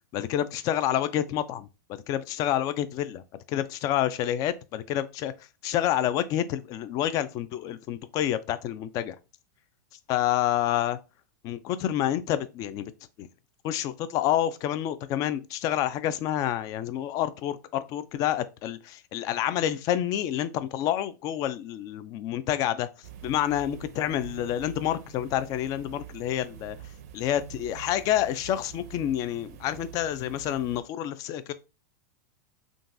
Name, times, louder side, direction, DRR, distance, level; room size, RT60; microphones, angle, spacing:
voice 1, 0.1-5.3 5.6-9.2 10.1-11.0 11.4-12.9 13.2-13.3 13.6-22.9 23.2-26.8 27.1-31.5, left 11 dB, 40° left, 0.4 m, -28 dB
sound 1, 23.0-30.8, right 10 dB, 65° right, 0.5 m, -45 dB
3.7 x 2.3 x 2.5 m
supercardioid pair, 130°, 9 cm